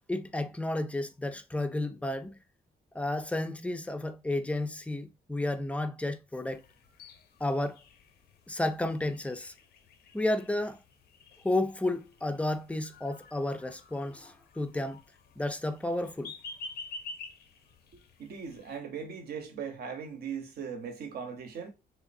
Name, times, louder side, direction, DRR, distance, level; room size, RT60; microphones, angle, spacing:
voice 1, 0.1-2.4 2.9-6.6 7.4-7.8 8.5-9.5 10.1-10.8 11.4-15.0 15.4-16.3, left 1 dB, 10° left, 0.3 m, -32 dB
sound 1, 6.5-18.8, left 3 dB, 90° left, 0.6 m, -50 dB
voice 2, 18.2-21.7, right 6 dB, 75° right, 0.9 m, -39 dB
3.6 x 3.2 x 2.5 m
wide cardioid pair, 155°, 16 cm